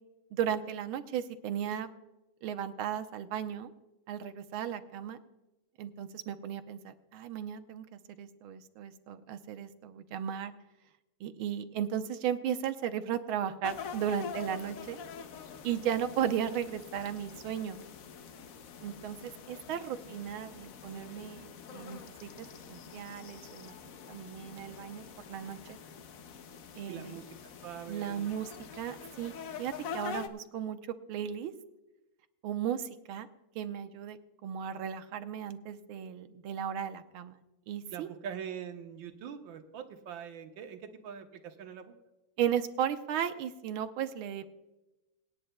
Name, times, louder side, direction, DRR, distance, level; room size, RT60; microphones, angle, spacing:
voice 1, 0.3-1.9 2.4-3.7 4.1-5.2 5.8-10.5 11.2-15.0 15.6-17.8 18.8-23.8 24.1-25.8 26.8-27.2 27.9-28.5 28.8-30.8 31.1-31.5 32.4-33.3 33.5-38.1 42.4-44.6, right 9 dB, 90° right, 9 dB, 1.7 m, -35 dB
sound 1, 13.6-30.3, left 6 dB, 60° left, 0.9 m, -45 dB
voice 2, 26.9-28.3 37.9-41.9, right 8 dB, 70° right, 6 dB, 1.8 m, -43 dB
26.5 x 9.4 x 2.2 m, 0.99 s
omnidirectional pair, 2.2 m